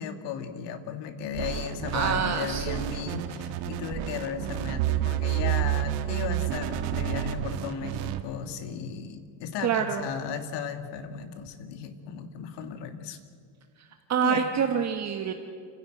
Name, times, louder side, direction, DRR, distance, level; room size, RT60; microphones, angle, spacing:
voice 1, 0.0-13.2 14.2-14.4, left 7 dB, 70° left, 8 dB, 2.1 m, -35 dB
sound 1, 1.3-8.2, right 12 dB, 90° right, 1.6 m, -30 dB
voice 2, 1.9-2.8 9.6-10.1 14.1-15.3, right 7 dB, 40° right, 5 dB, 1.3 m, -26 dB
30.0 x 11.0 x 9.1 m, 2.3 s
cardioid pair, 115°, 43 cm